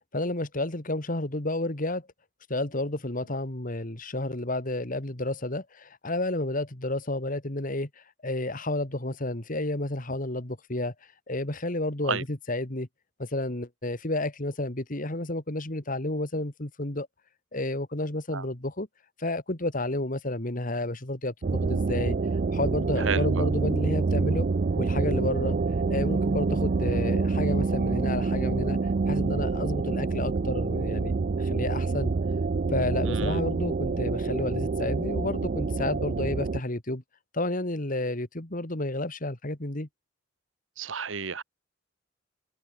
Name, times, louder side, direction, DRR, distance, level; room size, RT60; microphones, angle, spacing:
voice 1, 0.1-2.1 2.5-7.9 8.2-10.9 11.3-12.9 13.2-17.1 17.5-18.9 19.2-22.2 22.5-24.5 24.8-25.6 25.9-28.8 29.1-31.1 31.4-32.1 32.7-37.0 37.3-39.9, left 2 dB, 45° left, 2.4 m, -31 dB
sound 1, 21.4-36.6, right 4 dB, 45° right, 0.4 m, -27 dB
voice 2, 23.0-23.5 33.0-33.4 40.8-41.4, right 5 dB, 75° right, 1.3 m, -32 dB
head